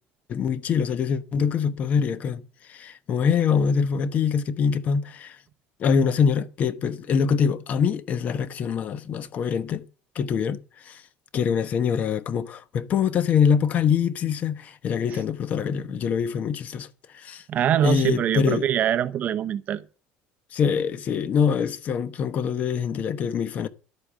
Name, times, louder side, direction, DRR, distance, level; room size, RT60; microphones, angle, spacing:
voice 1, 0.3-2.4 2.7-5.4 5.8-9.8 10.1-11.0 11.3-16.9 17.1-17.4 17.8-18.7 20.5-23.7, left 6 dB, 35° left, 1.0 m, -24 dB
voice 2, 17.5-19.8, right 10 dB, 35° right, 0.8 m, -23 dB
11.5 x 8.6 x 7.4 m
cardioid pair, 170°, 5 cm